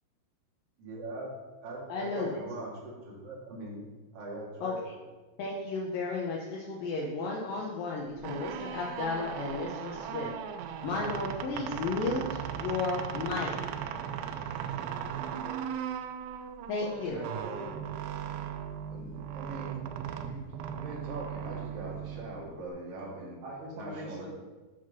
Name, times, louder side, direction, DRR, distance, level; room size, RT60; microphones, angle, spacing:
voice 1, 0.8-1.3 1.6-3.8 4.1-4.8 17.6-17.7 18.9-19.8 20.2-23.4 23.7-24.3, right 2 dB, 45° right, -4 dB, 2.1 m, -41 dB
voice 2, 1.9-2.3 4.6-4.9 5.4-10.3 10.8-12.2 12.5-13.5 16.7-17.2, left 3 dB, 80° left, -3 dB, 2.0 m, -33 dB
sound 1, 8.1-22.7, right 9 dB, 90° right, 2.9 m, -38 dB
voice 3, 16.8-17.6 23.4-24.3, right 2 dB, 65° right, -6 dB, 2.3 m, -41 dB
7.7 x 4.6 x 6.0 m, 1.3 s
omnidirectional pair, 5.1 m